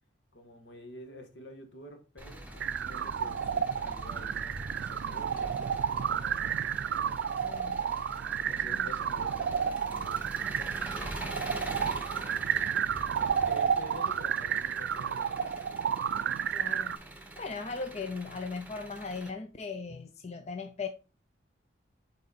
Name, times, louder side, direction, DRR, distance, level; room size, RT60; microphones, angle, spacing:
voice 1, 0.3-6.6 8.4-12.7 13.2-15.7, left 1 dB, 70° left, 1.5 m, -49 dB
Engine, 2.2-19.3, right 1 dB, 10° right, 0.9 m, -44 dB
sound 1, 2.6-17.0, right 8 dB, 65° right, 0.3 m, -31 dB
voice 2, 7.4-7.8 8.6-8.9 16.5-16.9 17.4-20.9, left 4 dB, 35° left, 0.5 m, -38 dB
6.5 x 4.2 x 4.2 m
head